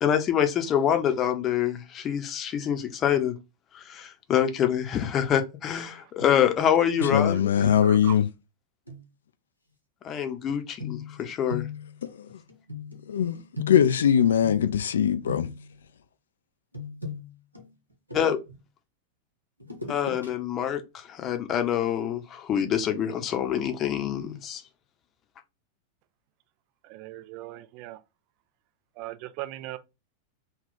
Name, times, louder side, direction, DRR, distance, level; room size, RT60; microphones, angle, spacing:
voice 1, 0.0-3.3 3.7-7.7 10.0-11.7 18.1-18.4 19.9-24.6, left 9 dB, 30° left, 0.7 m, -26 dB
sound 1, 6.2-6.7 7.0-7.4 8.9-9.0 10.8-14.9 15.3-15.8 16.7-18.6 19.6-20.3 20.7-20.8, left 4 dB, 85° right, 1.0 m, -38 dB
voice 2, 7.1-8.3 13.1-13.4 13.7-15.5, left 8 dB, 65° left, 0.3 m, -21 dB
voice 3, 7.8-8.2 26.9-28.0 29.0-29.8, right 16 dB, 45° right, 0.4 m, -38 dB
3.7 x 2.3 x 3.9 m
figure-of-eight pair, 90°, 0 cm